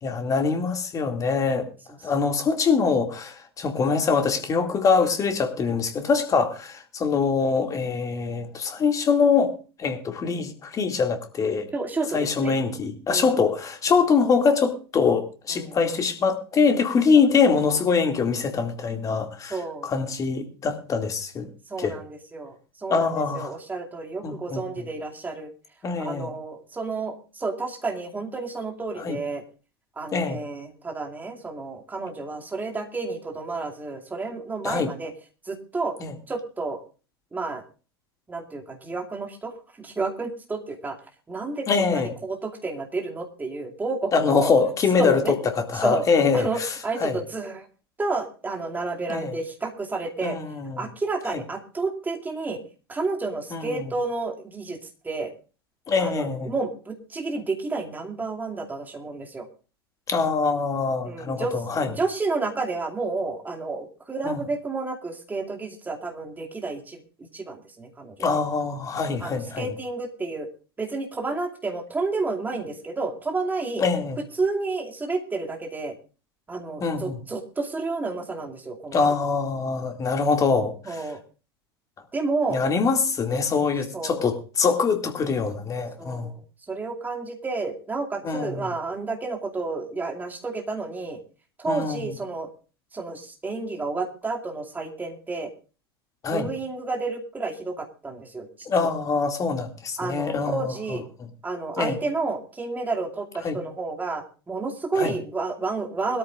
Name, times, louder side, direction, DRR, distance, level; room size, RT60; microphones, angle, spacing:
voice 1, 0.0-1.7 2.0-9.5 9.8-11.7 12.1-19.6 19.8-21.5 21.8-22.0 22.9-23.5 24.2-24.6 25.8-26.3 29.0-29.2 30.1-30.4 34.6-34.9 36.0-36.1 41.7-42.1 44.1-47.1 49.1-49.4 50.2-50.8 53.5-53.8 55.9-56.5 60.1-61.9 64.2-64.4 68.2-69.7 73.8-74.2 76.8-77.1 78.9-81.0 82.5-86.3 88.2-88.6 91.7-92.0 96.2-96.5 98.7-101.0 101.8-102.0 103.4-103.6 105.0-105.1, left 5 dB, 25° left, 6 dB, 2.4 m, -24 dB
voice 2, 1.9-2.4 11.7-12.6 13.1-13.4 15.5-15.8 19.5-19.9 21.7-25.5 26.0-29.4 30.0-35.1 35.5-36.0 36.3-36.8 37.3-37.6 38.3-41.0 41.3-44.5 45.0-45.3 45.8-46.0 46.3-47.7 48.0-50.4 50.8-52.6 52.9-54.8 55.0-55.3 56.0-59.5 61.0-61.6 61.8-67.0 67.3-68.1 69.2-70.5 70.8-73.8 74.2-75.9 76.5-79.0 80.9-81.2 82.1-82.6 83.9-84.3 86.0-86.4 86.7-91.2 91.6-92.5 92.9-95.5 96.3-98.5 100.0-101.1 101.4-106.2, right 3 dB, 15° right, 2 dB, 2.5 m, -30 dB
21.5 x 13.5 x 2.5 m, 0.35 s
figure-of-eight pair, 85°, 13 cm